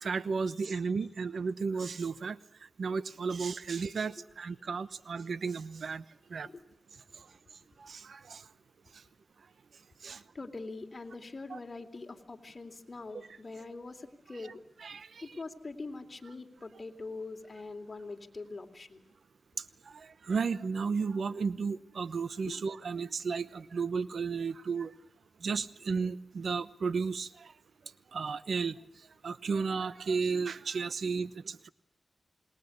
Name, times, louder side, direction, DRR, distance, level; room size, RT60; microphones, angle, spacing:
voice 1, 0.0-2.4 2.8-6.0 6.3-6.5 7.8-8.4 10.0-10.2 11.5-11.6 14.4-14.5 14.8-15.2 19.9-24.9 25.4-27.5 28.1-28.7 29.2-31.7, right 5 dB, 75° right, 16 dB, 1.0 m, -33 dB
voice 2, 10.1-14.6 15.2-19.0 22.5-22.6, left 3 dB, 40° left, 5 dB, 3.5 m, -43 dB
27.0 x 21.0 x 8.2 m, 0.75 s
cardioid pair, 55°, 0 cm